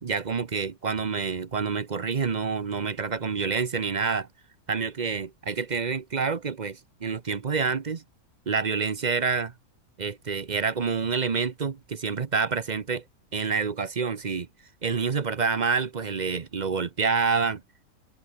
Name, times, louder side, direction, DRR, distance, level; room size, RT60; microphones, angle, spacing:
voice 1, 0.0-4.3 4.7-8.0 8.5-9.5 10.0-13.0 13.3-14.5 14.8-17.6, right 5 dB, 35° right, 0.7 m, -27 dB
open air
omnidirectional pair, 1.6 m